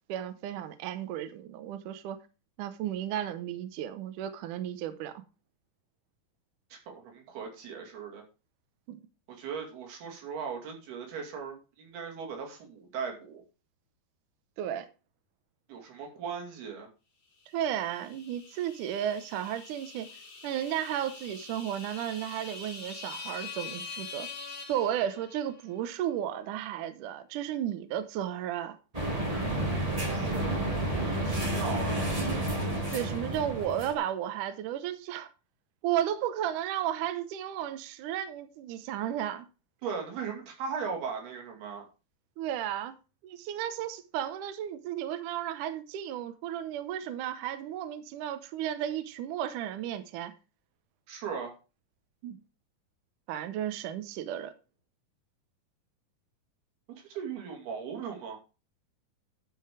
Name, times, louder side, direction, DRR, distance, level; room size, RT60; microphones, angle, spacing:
voice 1, 0.1-2.2 2.6-5.1 8.9-9.0 14.6-14.9 17.5-20.1 20.4-24.3 24.7-28.8 32.9-35.3 35.8-39.5 42.4-42.9 43.2-50.3 52.2-52.4 53.3-54.5, right 11 dB, 75° right, 2.1 m, -33 dB
voice 2, 6.7-8.2 9.3-13.4 15.7-16.9 30.3-30.6 30.9-32.5 39.8-41.9 51.1-51.5 56.9-58.4, right 6 dB, 90° right, 4.3 m, -38 dB
sound 1, 17.6-25.6, left 5 dB, 50° left, 2.8 m, -44 dB
sound 2, 28.9-33.9, right 1 dB, 20° right, 1.1 m, -30 dB
11.5 x 5.5 x 5.0 m
omnidirectional pair, 4.3 m